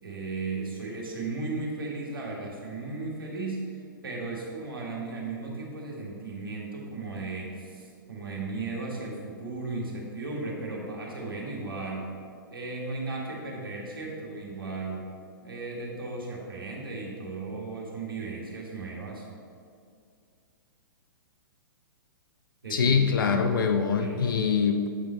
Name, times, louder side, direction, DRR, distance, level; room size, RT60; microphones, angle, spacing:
voice 1, 0.0-12.0 12.5-15.1 15.4-19.3 22.6-23.5 24.0-24.3, right 3 dB, 80° right, -2 dB, 1.6 m, -36 dB
voice 2, 22.7-24.9, left 6 dB, 70° left, 6 dB, 0.5 m, -24 dB
8.2 x 3.9 x 4.3 m, 2.2 s
figure-of-eight pair, 115°, 12 cm